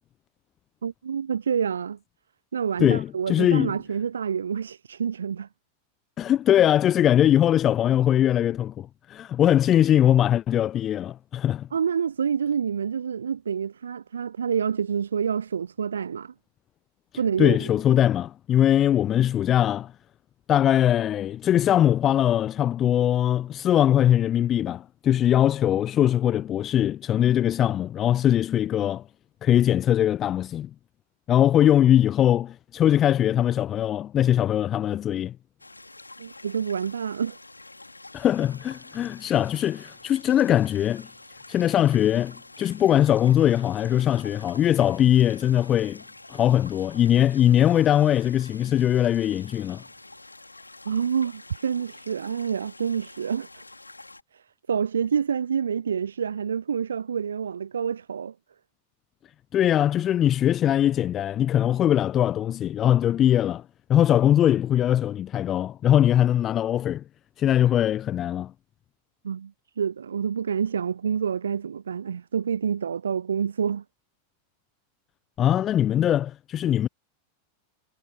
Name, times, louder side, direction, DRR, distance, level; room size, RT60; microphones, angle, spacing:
voice 1, 0.8-2.0 2.5-5.5 11.7-16.3 17.2-17.7 36.2-37.4 50.9-53.6 54.3-54.4 54.7-58.3 69.2-73.8, right 7 dB, 70° right, 0.5 m, -27 dB
voice 2, 2.8-3.7 6.2-11.7 17.4-19.9 20.5-29.0 29.4-30.7 31.3-35.3 38.1-41.1 41.5-46.0 46.3-49.8 59.5-63.6 63.9-67.0 67.4-68.5 75.4-76.9, left 11 dB, 30° left, 0.8 m, -21 dB
sound 1, 35.6-54.2, left 2 dB, 85° left, 3.1 m, -47 dB
figure-of-eight pair, 90°, 0 cm